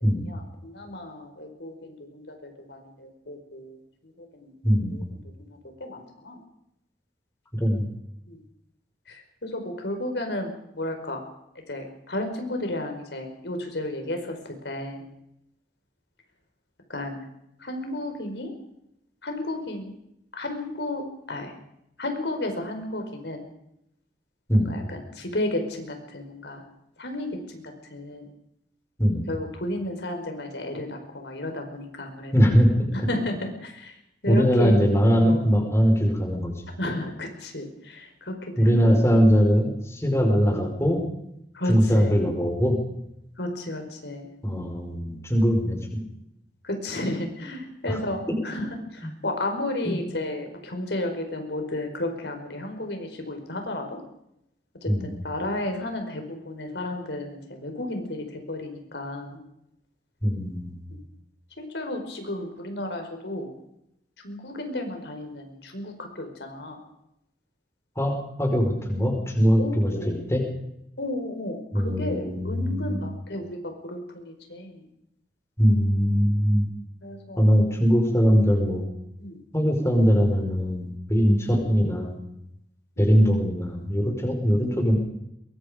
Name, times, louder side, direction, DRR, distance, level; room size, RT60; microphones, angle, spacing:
voice 1, 0.2-4.5 4.9-5.0 5.5-6.4 8.3-8.4 9.1-11.2 11.7-15.0 16.9-17.2 17.6-18.5 19.2-19.9 20.3-21.5 22.0-23.5 24.5-26.6 27.0-28.3 29.3-32.5 32.9-34.0 34.2-34.8 35.2-35.5 36.8-39.0 40.0-40.2 41.5-42.1 43.4-44.3 46.6-48.7 48.9-54.0 54.8-59.4 60.9-61.0 61.6-63.5 64.2-66.8 69.6-70.1 71.0-74.9 77.0-77.5 79.2-79.4 83.0-83.1, left 1 dB, 85° left, 5 dB, 4.9 m, -33 dB
voice 2, 4.6-5.0 7.5-7.9 24.5-24.7 29.0-29.2 32.3-32.7 34.3-36.5 38.6-41.0 41.7-42.8 44.4-46.0 47.9-48.0 49.0-49.1 49.9-50.0 54.9-55.2 60.2-60.7 68.0-70.4 71.7-73.0 75.6-76.7 77.4-78.8 79.5-82.2 83.0-85.0, equal, 15° left, 2 dB, 5.1 m, -21 dB
23.0 x 22.5 x 5.2 m, 0.79 s
head